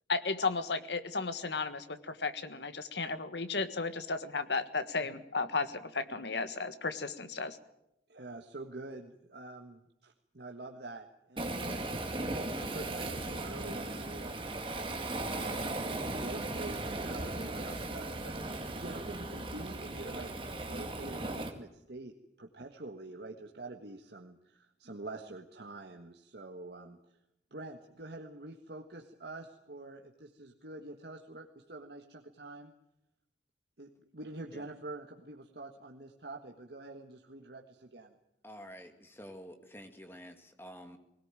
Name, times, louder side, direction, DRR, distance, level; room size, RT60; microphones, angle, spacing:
voice 1, 0.1-7.6, left 4 dB, 75° left, 11 dB, 1.6 m, -34 dB
voice 2, 8.1-11.8 12.6-14.5 14.8-18.3 18.8-20.3 20.6-27.0 27.5-32.7 33.8-38.1, right 2 dB, 65° right, 2 dB, 1.6 m, -46 dB
Waves surf, 11.4-21.5, right 2 dB, 30° right, 2.2 m, -37 dB
voice 3, 38.4-41.0, equal, 10° left, 6 dB, 2.1 m, -49 dB
20.5 x 18.5 x 9.0 m, 0.84 s
head